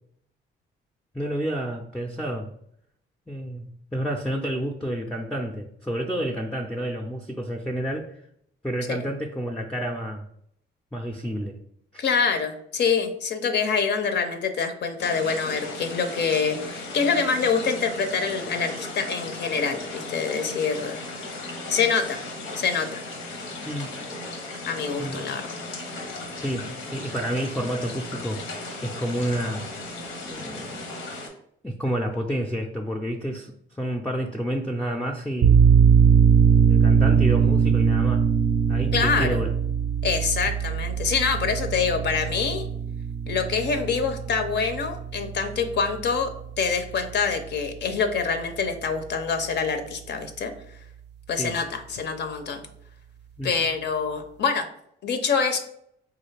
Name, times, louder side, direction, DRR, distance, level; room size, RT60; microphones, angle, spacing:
voice 1, 1.1-2.5 3.3-8.2 8.6-10.3 10.9-11.6 11.9-12.0 23.6-24.0 25.0-25.3 26.4-29.7 30.3-31.0 31.6-35.6 36.6-38.2 38.7-39.5 51.4-51.5 53.4-53.7, equal, 5° left, 3 dB, 0.4 m, -30 dB
voice 2, 12.0-21.0 21.7-22.2 22.6-23.0 24.7-25.6 38.9-39.4 40.0-42.7 43.3-46.3 46.6-50.5 51.3-52.6 53.4-54.7 55.0-55.6, left 5 dB, 60° left, 7 dB, 0.5 m, -25 dB
sound 1, 15.0-31.3, left 2 dB, 90° left, 0.8 m, -36 dB
sound 2, 35.4-46.7, right 7 dB, 60° right, 0.4 m, -21 dB
3.6 x 2.3 x 3.2 m, 0.70 s
cardioid pair, 80°, 20 cm